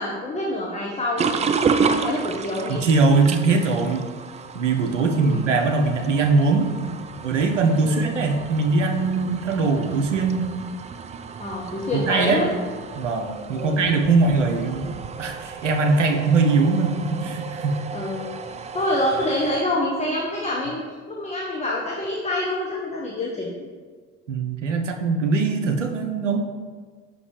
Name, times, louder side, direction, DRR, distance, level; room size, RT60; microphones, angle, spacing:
voice 1, 0.0-1.4 1.9-2.8 5.1-5.4 7.8-8.0 11.4-12.5 13.5-13.7 17.9-18.3 18.7-23.6, left 1 dB, 20° left, -3 dB, 1.1 m, -26 dB
sound 1, 1.2-19.6, right 5 dB, 20° right, 0.3 m, -31 dB
voice 2, 2.7-4.1 4.5-6.7 7.2-10.5 11.9-12.4 12.9-17.8 24.3-26.4, right 3 dB, 90° right, 5 dB, 0.6 m, -21 dB
7.1 x 5.8 x 3.2 m, 1.5 s
figure-of-eight pair, 60°, 36 cm